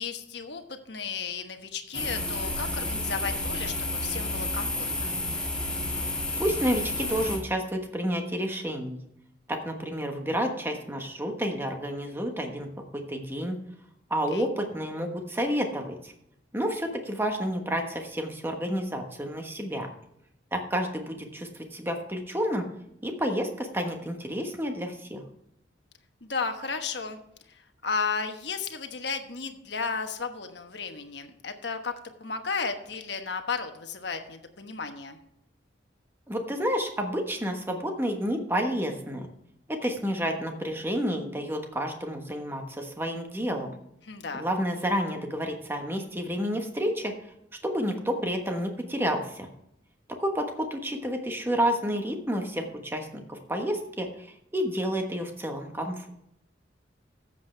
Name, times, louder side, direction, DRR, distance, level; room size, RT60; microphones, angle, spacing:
voice 1, 0.0-5.1 14.3-14.5 26.2-27.2 27.5-31.9 32.2-35.2 44.0-44.4, left 5 dB, 60° left, 6 dB, 1.2 m, -34 dB
sound 1, 1.9-7.4, left 2 dB, 5° left, 2.1 m, -31 dB
voice 2, 6.4-9.0 9.5-12.7 12.9-13.6 14.1-16.1 16.5-19.9 20.5-22.7 23.0-25.2 36.3-39.3 39.7-43.7 44.3-47.1 47.6-49.5 50.2-56.1, equal, 10° right, 4 dB, 1.3 m, -30 dB
13.5 x 7.8 x 3.3 m, 0.79 s
head